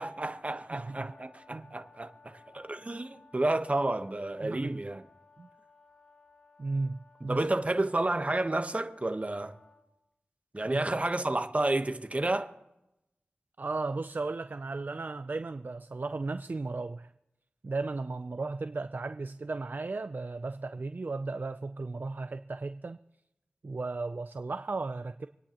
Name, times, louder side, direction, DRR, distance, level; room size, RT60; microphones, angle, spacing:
voice 1, 0.0-5.0 7.3-9.5 10.5-12.5, right 2 dB, 35° right, 1.0 m, -31 dB
voice 2, 0.7-1.1 1.5-1.7 4.4-4.8 5.4-5.5 6.6-7.4 10.6-11.0 13.6-17.1 17.6-23.0 23.6-25.3, right 3 dB, 50° right, 0.4 m, -35 dB
Brass instrument, 0.8-9.9, left 4 dB, 30° left, 3.0 m, -60 dB
27.0 x 9.9 x 2.9 m
cardioid pair, 45°, 4 cm